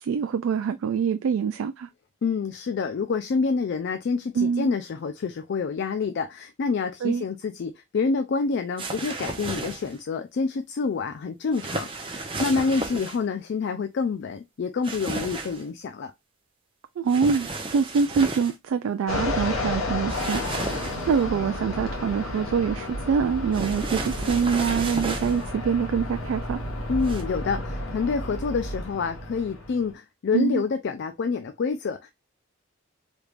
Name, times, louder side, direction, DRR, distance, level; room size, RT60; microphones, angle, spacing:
voice 1, 0.0-1.9 4.4-4.7 7.0-7.2 17.0-17.5 17.7-26.6 30.3-30.6, right 6 dB, 70° right, 0.3 m, -25 dB
voice 2, 2.2-16.1 26.9-32.1, left 4 dB, 55° left, 0.3 m, -27 dB
sound 1, 8.8-10.0 11.5-13.2 14.8-15.6 17.1-18.5 20.1-21.2 23.5-25.4 27.0-27.2, right 2 dB, 25° right, 0.6 m, -33 dB
Fixed-wing aircraft airplane, 19.1-29.9, left 1 dB, 70° left, 1.3 m, -32 dB
3.4 x 3.2 x 2.4 m
head